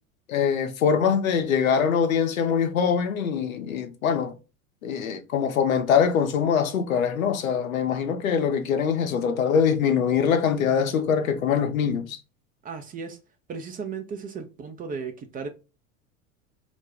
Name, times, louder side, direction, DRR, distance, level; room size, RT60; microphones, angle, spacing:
voice 1, 0.3-4.3 4.8-12.2, left 7 dB, 80° left, 0.6 m, -23 dB
voice 2, 12.6-13.2 13.5-15.5, right 5 dB, 20° right, 0.4 m, -35 dB
2.5 x 2.2 x 3.3 m
figure-of-eight pair, 75°, 40 cm